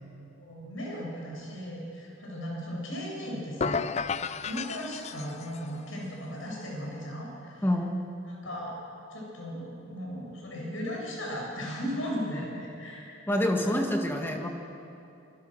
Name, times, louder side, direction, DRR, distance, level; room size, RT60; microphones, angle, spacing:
voice 1, 0.4-3.9 4.4-7.7 8.3-8.8 9.1-13.3 13.6-13.8, equal, 75° left, -2 dB, 7.9 m, -37 dB
sound 1, 3.6-5.7, left 5 dB, 35° left, 0.5 m, -32 dB
voice 2, 7.6-8.0 13.3-14.5, left 1 dB, 10° left, 2 dB, 1.8 m, -27 dB
25.0 x 23.5 x 6.5 m, 2.8 s
head